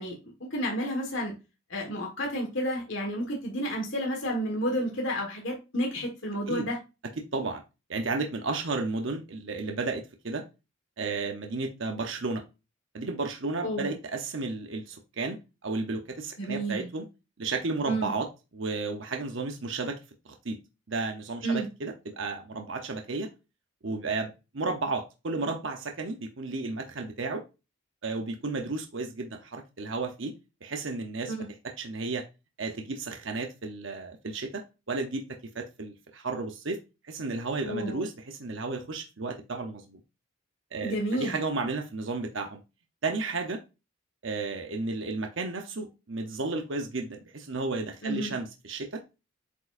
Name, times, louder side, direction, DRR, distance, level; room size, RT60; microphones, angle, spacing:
voice 1, 0.0-1.3 1.7-6.8 13.6-13.9 16.4-16.9 17.8-18.1 21.4-21.7 31.3-31.5 37.6-38.0 40.8-41.4 48.0-48.3, equal, 60° left, 0 dB, 1.6 m, -31 dB
voice 2, 7.9-10.4 11.0-12.4 12.9-15.4 15.6-17.0 17.4-18.3 18.5-20.0 20.2-20.6 20.9-23.3 23.8-27.4 28.0-30.3 30.6-31.3 31.8-32.2 32.6-34.6 34.9-35.3 35.5-36.8 37.0-40.0 40.7-42.6 43.0-43.6 44.2-49.0, right 3 dB, 65° right, 4 dB, 0.8 m, -33 dB
8.2 x 4.7 x 2.5 m, 0.28 s
head